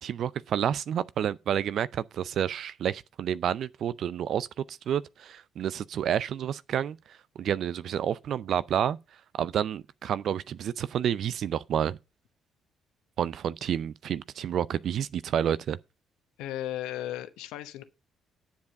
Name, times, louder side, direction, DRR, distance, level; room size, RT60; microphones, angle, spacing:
voice 1, 0.0-7.0 7.4-9.0 9.4-12.0 13.2-15.8, right 9 dB, 60° right, 0.5 m, -29 dB
voice 2, 16.4-17.8, left 13 dB, 70° left, 1.0 m, -35 dB
10.5 x 7.3 x 5.3 m
hypercardioid pair, 45°, 0 cm